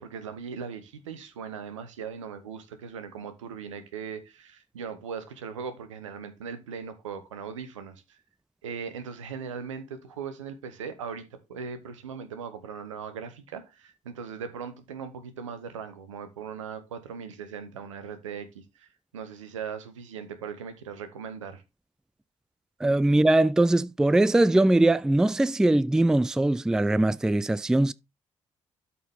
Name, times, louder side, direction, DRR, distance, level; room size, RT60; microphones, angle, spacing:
voice 1, 0.0-8.2 8.6-18.9 19.1-21.6, right 6 dB, 80° right, 0.9 m, -39 dB
voice 2, 22.8-27.9, right 2 dB, 5° right, 0.3 m, -21 dB
12.5 x 4.3 x 3.5 m
figure-of-eight pair, 40°, 16 cm